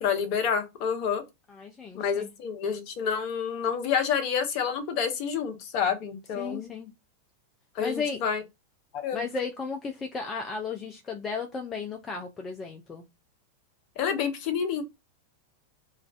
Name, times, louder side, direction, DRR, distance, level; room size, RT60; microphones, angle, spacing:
voice 1, 0.0-1.2 1.9-6.7 7.7-8.4 8.9-9.2 14.0-14.8, left 7 dB, 45° left, 0.7 m, -28 dB
voice 2, 1.5-2.3 6.4-6.9 7.8-8.2 9.1-13.0, left 5 dB, 20° left, 0.4 m, -34 dB
3.1 x 2.3 x 2.3 m
figure-of-eight pair, 90°, 0 cm